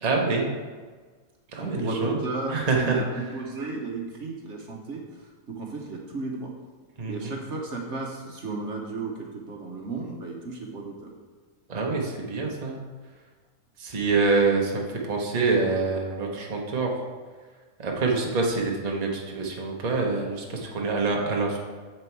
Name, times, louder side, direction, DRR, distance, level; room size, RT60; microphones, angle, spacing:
voice 1, 0.0-0.5 1.5-2.2 2.5-3.0 7.0-7.3 11.7-12.8 13.8-16.9 17.8-21.6, right 3 dB, 30° right, -1 dB, 1.0 m, -26 dB
voice 2, 1.6-6.5 7.1-11.1, right 3 dB, 55° right, 0 dB, 1.3 m, -34 dB
7.5 x 6.9 x 4.6 m, 1.4 s
omnidirectional pair, 1.5 m